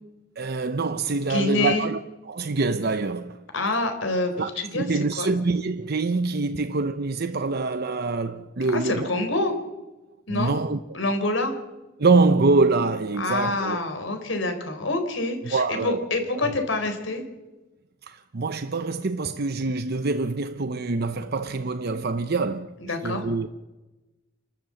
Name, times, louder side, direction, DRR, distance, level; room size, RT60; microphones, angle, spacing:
voice 1, 0.4-2.0 2.3-3.4 4.4-9.1 10.3-10.8 12.0-13.8 15.4-16.1 16.3-16.5 18.0-23.5, right 3 dB, 55° right, 0.8 m, -25 dB
voice 2, 1.2-1.9 3.5-4.9 5.2-5.3 8.7-9.5 10.3-10.6 10.9-11.5 13.2-17.2 22.9-23.3, left 2 dB, 75° left, 4.2 m, -26 dB
29.0 x 13.0 x 7.9 m
head